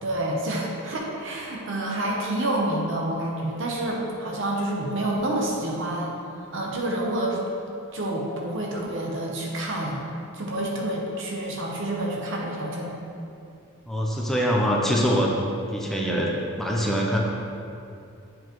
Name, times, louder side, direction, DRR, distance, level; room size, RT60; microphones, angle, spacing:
voice 1, 0.0-6.2 6.5-7.4 7.9-10.0 10.3-12.9, right 1 dB, 60° right, -2 dB, 0.9 m, -28 dB
voice 2, 13.9-17.2, equal, ahead, -3 dB, 0.6 m, -24 dB
7.7 x 4.6 x 3.1 m, 2.6 s
head